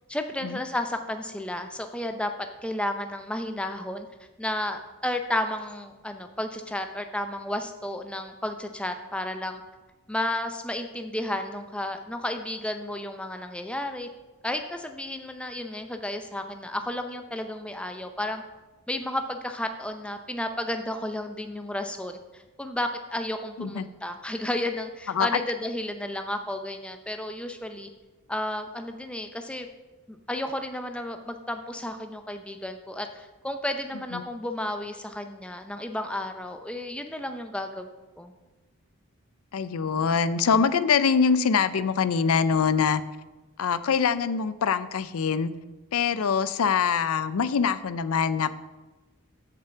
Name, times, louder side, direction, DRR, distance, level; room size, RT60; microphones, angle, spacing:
voice 1, 0.1-2.3 2.6-4.1 4.4-9.6 10.1-14.1 14.4-18.4 18.9-27.9 28.3-29.7 30.1-37.9 38.2-38.3 46.1-46.2, left 1 dB, 5° left, 6 dB, 0.5 m, -32 dB
voice 2, 39.5-43.0 43.6-45.5 45.9-48.5, left 6 dB, 80° left, 15 dB, 0.5 m, -24 dB
6.9 x 5.6 x 7.0 m, 1.1 s
head